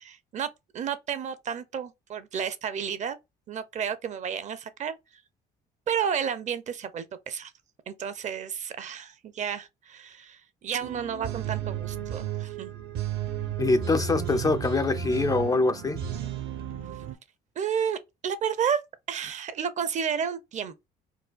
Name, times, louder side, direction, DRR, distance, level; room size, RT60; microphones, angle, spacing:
voice 1, 0.0-3.2 3.5-5.0 5.9-7.5 7.9-12.7 17.6-18.8 19.1-20.9, right 7 dB, 45° right, 0.6 m, -31 dB
sound 1, 10.8-17.1, right 9 dB, 70° right, 0.9 m, -33 dB
voice 2, 13.6-16.0, left 3 dB, 20° left, 0.3 m, -24 dB
4.7 x 2.2 x 2.4 m
cardioid pair, 110°, 17 cm